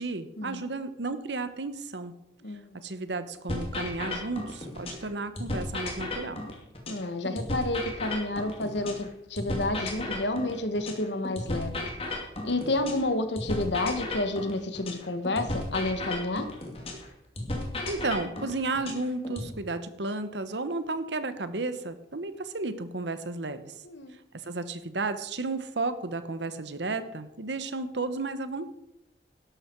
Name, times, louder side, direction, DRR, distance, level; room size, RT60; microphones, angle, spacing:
voice 1, 0.0-2.1 2.8-6.4 17.9-23.8 24.4-28.7, right 3 dB, 85° right, 11 dB, 1.2 m, -33 dB
voice 2, 2.4-2.8 6.9-11.9 12.4-16.5 23.8-24.1, left 2 dB, 85° left, 9 dB, 1.5 m, -30 dB
sound 1, 3.5-5.1 5.4-9.1 9.4-13.1 13.4-17.1 17.4-19.5, left 2 dB, 35° left, 2.7 m, -34 dB
13.0 x 11.5 x 4.7 m, 0.85 s
head